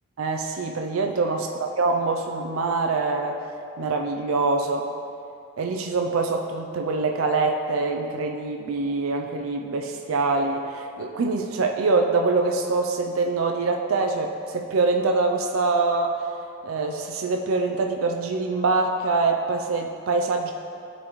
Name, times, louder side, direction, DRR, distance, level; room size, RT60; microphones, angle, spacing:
voice 1, 0.2-3.4 3.8-4.9 5.6-16.3 16.6-20.5, right 3 dB, 80° right, 3 dB, 0.4 m, -24 dB
12.0 x 4.0 x 3.1 m, 2.5 s
head